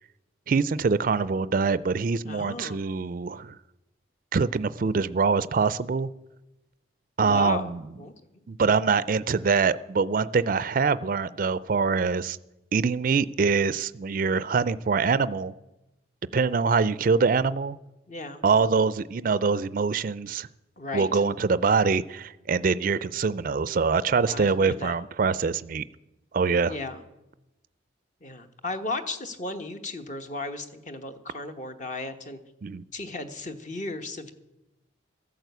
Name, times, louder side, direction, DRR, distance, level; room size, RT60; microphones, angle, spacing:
voice 1, 0.5-3.5 4.3-6.1 7.2-7.8 8.5-12.4 12.7-15.5 16.3-17.8 18.4-20.5 20.9-25.8 26.3-26.7 32.6-32.8, right 5 dB, 45° right, 17 dB, 0.4 m, -24 dB
voice 2, 2.2-2.8 7.2-7.7 8.0-8.1 18.1-18.4 20.8-21.2 24.3-25.0 26.7-27.0 28.2-32.4 32.9-34.3, left 2 dB, 40° left, 7 dB, 1.1 m, -35 dB
14.5 x 9.1 x 8.0 m, 0.97 s
head